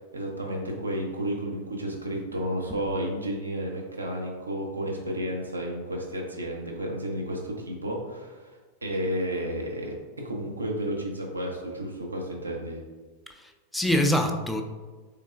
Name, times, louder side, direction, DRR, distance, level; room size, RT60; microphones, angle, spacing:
voice 1, 0.1-8.5 8.8-9.9 10.2-12.8, equal, 80° right, 0 dB, 0.6 m, -32 dB
voice 2, 13.3-14.6, left 1 dB, 5° left, 4 dB, 0.3 m, -25 dB
3.5 x 3.2 x 2.4 m, 1.3 s
figure-of-eight pair, 90°, 0 cm